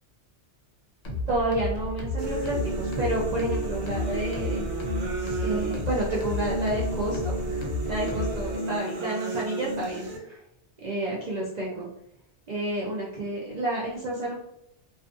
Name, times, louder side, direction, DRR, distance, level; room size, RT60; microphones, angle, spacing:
sound 1, 1.0-8.6, left 2 dB, 60° left, 0.4 m, -33 dB
voice 1, 1.3-4.7 5.4-10.4 10.8-11.9 12.5-14.3, right 1 dB, 55° right, -5 dB, 0.4 m, -30 dB
sound 2, 2.2-10.2, right 2 dB, 85° right, 0.9 m, -32 dB
2.4 x 2.4 x 2.5 m, 0.79 s
omnidirectional pair, 1.2 m